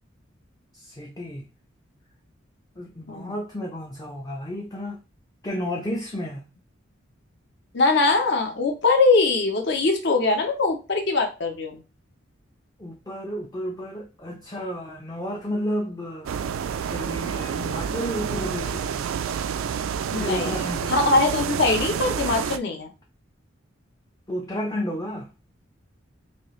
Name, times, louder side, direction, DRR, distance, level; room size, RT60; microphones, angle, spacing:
voice 1, 0.7-1.5 2.8-5.0 5.4-6.5 12.8-16.3 16.9-19.0 20.2-21.2 24.3-25.3, equal, 20° left, 0.5 m, -32 dB
voice 2, 7.7-11.8 20.1-22.9, left 3 dB, 55° left, 0.8 m, -22 dB
sound 1, 16.3-22.6, right 7 dB, 85° right, 0.3 m, -28 dB
4.3 x 2.5 x 3.1 m
head